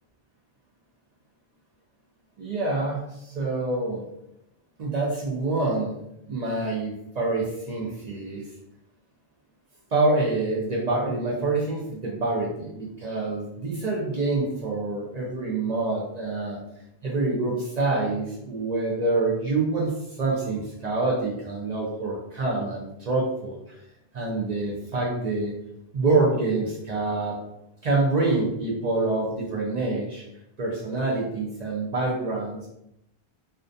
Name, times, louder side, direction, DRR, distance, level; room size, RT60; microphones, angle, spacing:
voice 1, 2.4-4.0 4.8-6.0 6.3-8.4 9.9-16.6 17.0-23.6 24.1-25.5 25.9-27.4 27.8-30.2 30.6-32.7, right 2 dB, 55° right, -3 dB, 0.5 m, -26 dB
2.4 x 2.1 x 2.5 m, 0.81 s
omnidirectional pair, 1.1 m